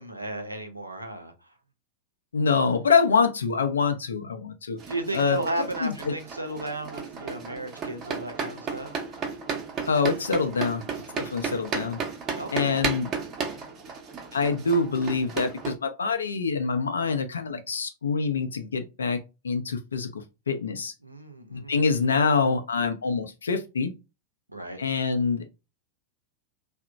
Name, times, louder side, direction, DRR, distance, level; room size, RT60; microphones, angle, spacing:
voice 1, 0.0-1.3 4.9-8.9 12.3-12.8 21.0-21.8 24.5-24.8, right 1 dB, 85° right, 0.5 m, -34 dB
voice 2, 2.3-4.8 5.1-6.1 9.9-12.0 12.5-13.1 14.3-20.9 21.5-23.9 24.8-25.4, left 5 dB, 70° left, 0.4 m, -25 dB
sound 1, 4.8-15.7, right 5 dB, 30° right, 0.6 m, -34 dB
2.8 x 2.0 x 2.5 m
figure-of-eight pair, 90°, 0 cm